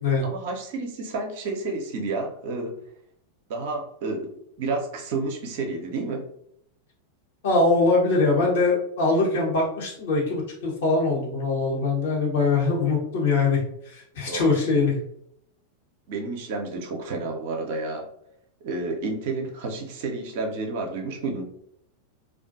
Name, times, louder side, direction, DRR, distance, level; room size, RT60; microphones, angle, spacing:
voice 1, 0.2-2.7 3.5-6.3 14.3-14.5 16.1-18.1 18.6-21.4, right 3 dB, 50° right, 2 dB, 0.5 m, -30 dB
voice 2, 7.4-15.0, left 3 dB, 55° left, -3 dB, 0.9 m, -22 dB
2.4 x 2.3 x 2.5 m, 0.71 s
figure-of-eight pair, 90°, 0 cm